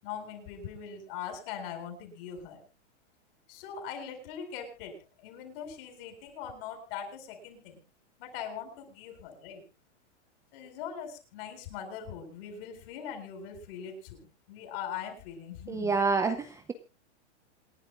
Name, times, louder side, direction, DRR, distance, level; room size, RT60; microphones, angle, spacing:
voice 1, 0.0-2.6 3.5-7.8 8.2-9.6 10.5-16.0, left 8 dB, 50° left, 4 dB, 7.9 m, -41 dB
voice 2, 15.7-16.7, right 4 dB, 10° right, 8 dB, 0.7 m, -28 dB
27.5 x 11.5 x 2.5 m, 0.30 s
hypercardioid pair, 140°, 36 cm